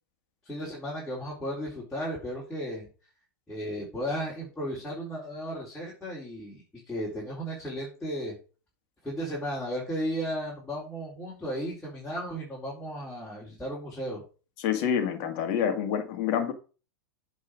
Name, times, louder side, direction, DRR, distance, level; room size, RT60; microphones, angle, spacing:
voice 1, 0.5-2.9 3.5-8.3 9.0-14.2, equal, 5° left, 3.9 m, -35 dB
voice 2, 14.6-16.5, left 8 dB, 45° left, 2.0 m, -27 dB
8.3 x 5.4 x 5.0 m
hypercardioid pair, 105°, 11 cm